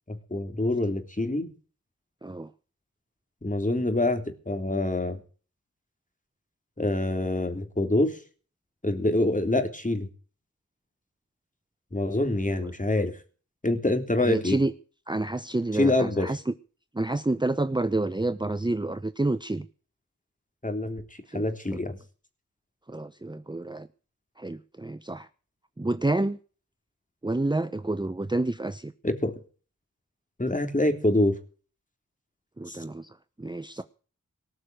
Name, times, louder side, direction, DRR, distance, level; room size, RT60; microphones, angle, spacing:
voice 1, 0.1-1.5 3.4-5.2 6.8-8.2 8.8-10.1 11.9-13.1 13.6-14.6 15.8-16.3 20.6-22.0 29.0-29.4 30.4-31.4 32.7-32.8, left 1 dB, 25° left, 6 dB, 3.6 m, -26 dB
voice 2, 14.2-14.7 15.1-16.5 16.9-19.7 21.3-21.4 22.9-23.9 24.4-25.3 25.8-26.4 27.2-28.9 32.6-33.8, right 2 dB, 15° right, 12 dB, 0.9 m, -29 dB
19.0 x 6.5 x 9.0 m, 0.39 s
wide cardioid pair, 55°, 32 cm